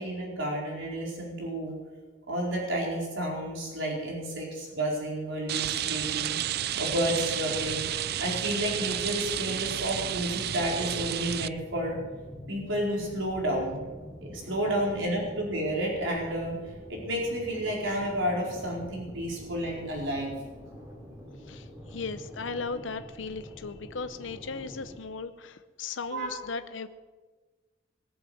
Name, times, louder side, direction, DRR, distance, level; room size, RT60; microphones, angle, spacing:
voice 1, 0.0-1.7 2.3-6.4 6.8-7.8 8.2-12.0 12.5-13.8 14.2-16.5 16.9-20.3 26.1-26.4, right 1 dB, 85° right, -2 dB, 4.6 m, -31 dB
Rain, 5.5-11.5, right 11 dB, 55° right, 0.4 m, -31 dB
sound 1, 7.5-25.0, equal, 15° right, 3.8 m, -46 dB
voice 2, 21.4-26.9, left 4 dB, 75° left, 10 dB, 0.7 m, -37 dB
21.5 x 8.0 x 7.8 m, 1.3 s
head